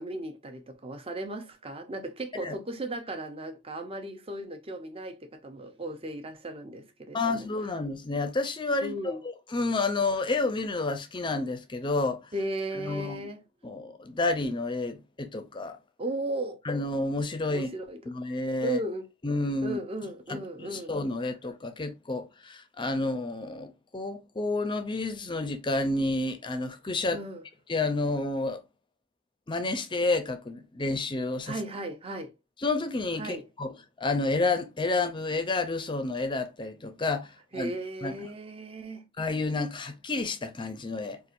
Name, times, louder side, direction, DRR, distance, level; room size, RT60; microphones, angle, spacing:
voice 1, 0.0-7.5 8.8-9.2 12.3-13.4 16.0-16.6 17.5-18.0 18.6-19.1 19.6-21.0 27.1-27.4 31.5-32.3 33.2-33.5 37.5-39.1, right 1 dB, 30° right, 0.6 m, -36 dB
voice 2, 7.1-12.3 12.7-13.3 13.6-15.8 16.7-17.7 18.1-18.8 19.2-19.8 20.3-27.2 27.7-28.6 29.5-31.6 32.6-37.7 38.0-38.1 39.2-41.2, left 3 dB, 25° left, 0.5 m, -30 dB
4.3 x 2.4 x 2.5 m
head